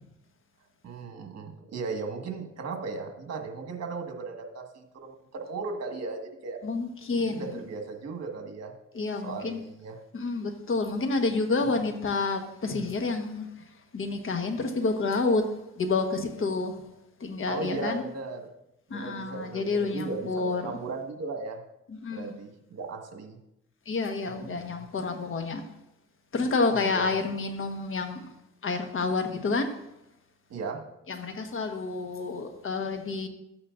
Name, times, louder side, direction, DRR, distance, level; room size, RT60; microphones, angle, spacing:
voice 1, 0.8-6.6 7.2-8.7 9.2-10.0 17.5-18.4 18.9-21.6 22.1-23.4 24.2-24.9 26.7-27.1 30.5-30.8, right 4 dB, 60° right, 3 dB, 1.7 m, -37 dB
voice 2, 6.6-7.5 8.9-9.6 10.1-13.5 13.9-15.5 15.8-16.8 17.2-18.0 18.9-20.7 22.0-22.3 23.9-25.6 26.3-28.3 28.6-29.7 31.1-33.3, left 3 dB, 45° left, 6 dB, 1.3 m, -29 dB
12.5 x 8.5 x 2.5 m, 0.86 s
cardioid pair, 90°, 30 cm